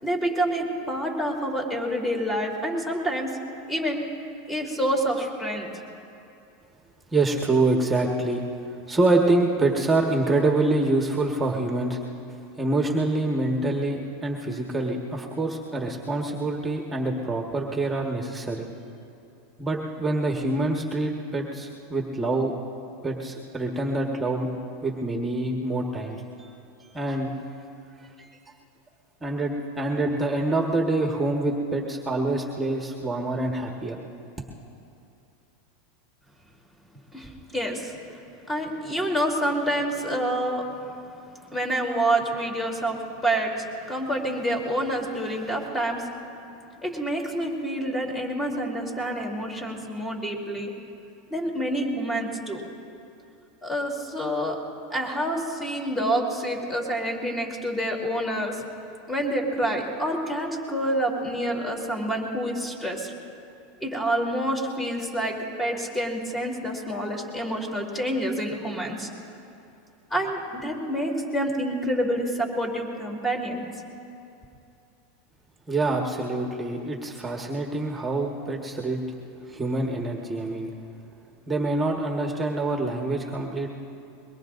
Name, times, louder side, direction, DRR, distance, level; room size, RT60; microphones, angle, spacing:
voice 1, 0.0-3.4 3.7-4.0 4.5-5.7 37.1-38.0 38.5-40.6 41.5-46.1 46.8-50.7 51.3-52.6 53.6-54.6 54.9-58.6 59.1-63.1 63.8-69.1 70.1-73.6, right 1 dB, 15° left, 0 dB, 3.3 m, -27 dB
voice 2, 7.1-8.4 8.9-12.0 12.6-18.7 19.6-22.5 23.0-24.5 24.8-26.2 26.9-27.3 29.2-34.0 75.7-79.0 79.5-80.7 81.5-83.7, right 2 dB, 15° right, 1 dB, 1.5 m, -26 dB
23.0 x 22.0 x 2.6 m, 2.8 s
hypercardioid pair, 105°, 0 cm